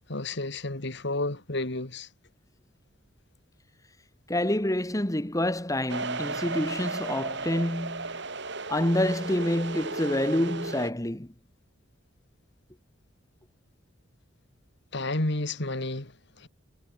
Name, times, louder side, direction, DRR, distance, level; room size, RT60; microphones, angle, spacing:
voice 1, 0.1-2.1 14.9-16.5, left 2 dB, 60° left, 2.5 m, -31 dB
voice 2, 4.3-8.3 8.7-11.3, left 1 dB, 15° left, 1.9 m, -27 dB
sound 1, 5.9-10.9, right 3 dB, 60° right, 7.7 m, -35 dB
head